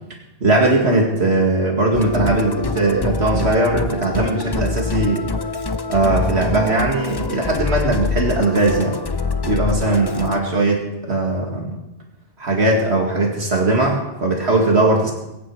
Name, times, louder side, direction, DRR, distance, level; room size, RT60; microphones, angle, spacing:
voice 1, 0.4-5.3 5.9-9.0 9.4-11.8 12.4-15.1, right 2 dB, 70° right, 0 dB, 2.3 m, -19 dB
Musical instrument, 1.9-10.4, left 4 dB, 30° left, 0.5 m, -25 dB
22.0 x 10.5 x 4.8 m, 0.96 s
omnidirectional pair, 1.1 m